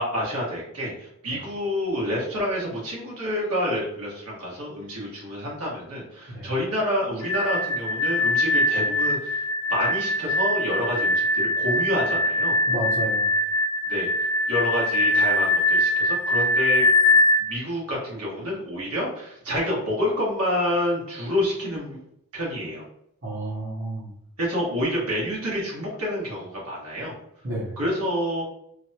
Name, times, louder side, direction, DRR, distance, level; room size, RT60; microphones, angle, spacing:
voice 1, 0.0-12.6 13.9-16.9 17.4-22.0 22.3-22.8 24.4-27.1 27.8-28.4, equal, 85° right, -5 dB, 1.4 m, -28 dB
sound 1, 7.2-17.4, left 1 dB, 55° left, 0.7 m, -22 dB
voice 2, 12.7-13.3 23.2-24.1 27.4-27.8, right 2 dB, 55° right, -6 dB, 0.8 m, -31 dB
3.2 x 2.2 x 2.7 m, 0.73 s
head